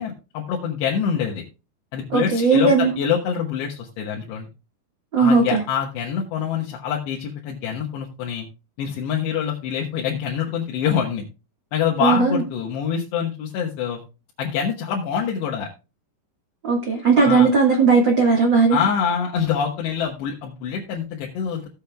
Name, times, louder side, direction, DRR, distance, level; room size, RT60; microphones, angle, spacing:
voice 1, 0.0-1.5 1.9-4.5 5.2-8.5 8.8-11.3 11.7-14.0 14.4-15.7 17.2-17.5 18.7-21.7, left 7 dB, 80° left, 3.4 m, -25 dB
voice 2, 2.1-2.9 5.1-5.6 12.0-12.4 16.6-18.8, right 4 dB, 70° right, 1.0 m, -17 dB
17.0 x 7.2 x 2.3 m
omnidirectional pair, 4.9 m